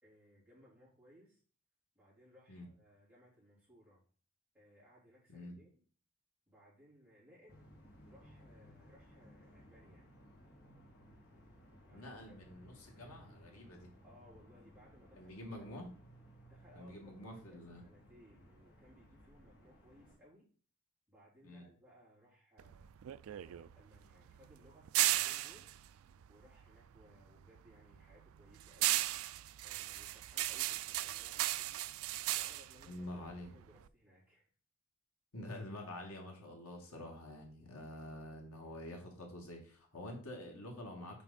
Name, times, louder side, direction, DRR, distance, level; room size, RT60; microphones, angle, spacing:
voice 1, 0.0-1.4 1.9-4.0 4.5-5.8 6.5-7.7 8.1-10.1 11.9-12.4 14.0-15.7 16.4-20.5 21.1-22.9 23.3-25.7 26.3-29.1 29.6-31.8 32.3-34.5, equal, 10° right, -8 dB, 3.5 m, -63 dB
sound 1, 7.5-20.2, equal, 45° left, 1.9 m, -60 dB
voice 2, 11.9-13.9 15.1-15.9 16.7-17.8 21.4-21.6 32.8-33.5 35.3-41.2, left 1 dB, 85° left, 1 dB, 2.0 m, -47 dB
sound 2, 22.6-27.1 27.4-33.9, right 15 dB, 75° right, 0.3 m, -36 dB
6.0 x 5.0 x 4.0 m, 0.42 s
head